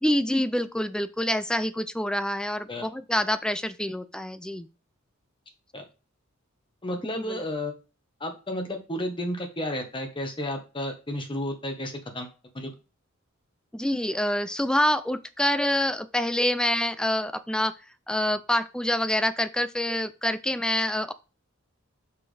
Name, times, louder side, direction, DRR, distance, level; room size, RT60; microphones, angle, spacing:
voice 1, 0.0-4.7 7.1-7.4 13.7-17.7 18.1-21.1, left 1 dB, 5° left, 13 dB, 0.4 m, -26 dB
voice 2, 6.8-7.7 8.2-12.3 12.5-12.7, left 1 dB, 25° left, 5 dB, 1.3 m, -32 dB
6.0 x 5.9 x 3.3 m, 0.32 s
head